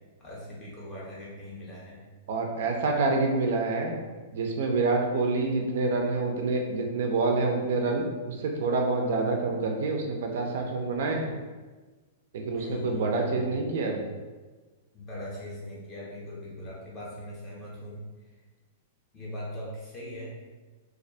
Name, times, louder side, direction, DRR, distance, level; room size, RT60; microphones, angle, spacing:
voice 1, 0.2-2.0 12.5-13.4 14.9-18.0 19.1-20.3, left 1 dB, 15° left, -6 dB, 0.6 m, -40 dB
voice 2, 2.3-3.9 4.3-11.3 12.3-14.0, right 3 dB, 55° right, 2 dB, 0.3 m, -27 dB
2.2 x 2.1 x 2.6 m, 1.3 s
supercardioid pair, 175°, 0 cm